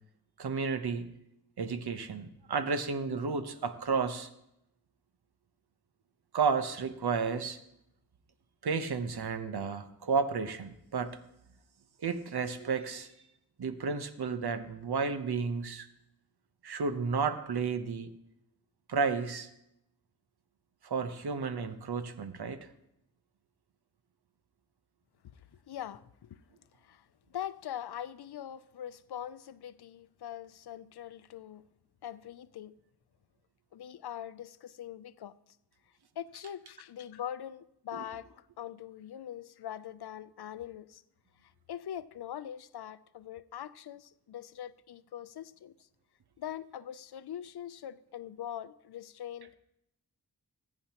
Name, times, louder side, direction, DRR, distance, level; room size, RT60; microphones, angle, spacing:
voice 1, 0.4-1.1 1.6-4.3 6.3-7.6 8.6-11.2 12.0-13.1 13.6-15.9 16.6-18.1 18.9-19.5 20.8-22.7, right 5 dB, 85° right, 0.9 m, -32 dB
voice 2, 25.7-26.4 26.8-31.6 32.0-32.7 33.7-35.4 36.2-41.0 41.4-45.7 46.4-49.6, left 10 dB, 80° left, 0.5 m, -42 dB
20.0 x 8.7 x 2.9 m
wide cardioid pair, 70°, 38 cm